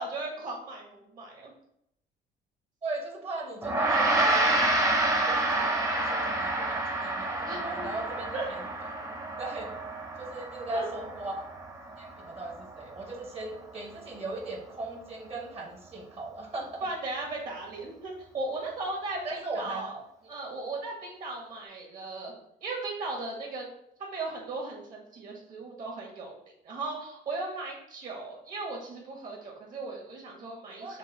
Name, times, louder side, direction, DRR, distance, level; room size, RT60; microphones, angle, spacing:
voice 1, 0.0-1.5 7.5-8.0 8.3-8.5 10.7-10.9 16.8-19.9 20.3-22.3 22.6-23.7 24.0-26.3 26.6-31.0, right 2 dB, 50° right, -1 dB, 1.6 m, -37 dB
voice 2, 2.8-8.7 9.4-9.7 10.2-11.5 12.0-16.9 19.2-20.0 30.8-31.0, right 2 dB, 35° right, 1 dB, 1.1 m, -38 dB
Gong, 3.6-13.2, right 2 dB, 20° right, 0.9 m, -29 dB
6.6 x 2.2 x 3.4 m, 0.76 s
cardioid pair, 110°, 17 cm